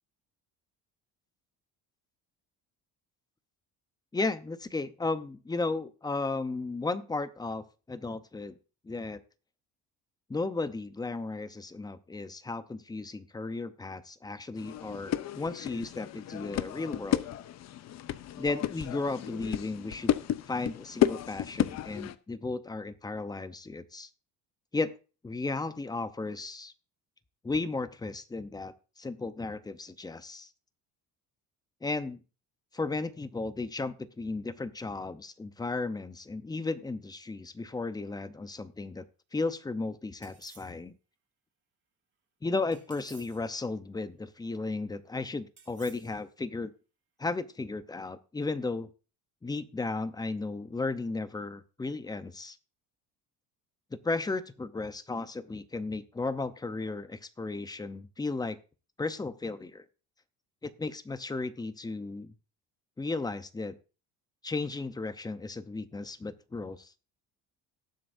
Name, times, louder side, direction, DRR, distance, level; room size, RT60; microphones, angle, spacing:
voice 1, 4.1-8.6 8.8-9.2 10.3-17.3 18.4-20.2 20.5-24.1 24.7-24.9 25.2-26.7 27.4-30.5 31.8-32.2 32.7-39.0 39.3-40.9 42.4-46.7 47.2-48.9 49.4-52.6 53.9-58.6 59.0-59.8 60.6-62.3 63.0-63.8 64.4-66.9, left 3 dB, 10° left, 13 dB, 0.7 m, -34 dB
sound 1, 14.6-22.1, left 12 dB, 50° left, 0.6 m, -32 dB
sound 2, 40.2-40.8 42.7-43.5 45.6-46.2, right 6 dB, 35° right, 2.1 m, -55 dB
18.5 x 7.8 x 2.6 m, 0.34 s
cardioid pair, 130°, 35 cm